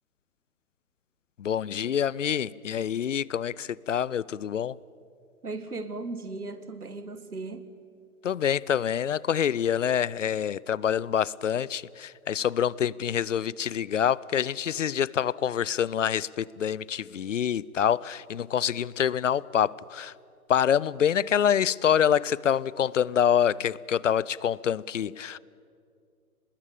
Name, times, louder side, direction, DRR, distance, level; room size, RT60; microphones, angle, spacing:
voice 1, 1.4-4.8 8.2-20.1 20.5-25.4, left 9 dB, 55° left, 0.6 m, -26 dB
voice 2, 5.4-7.7, right 3 dB, 80° right, 2.1 m, -37 dB
25.5 x 20.5 x 8.6 m
figure-of-eight pair, 125°, 44 cm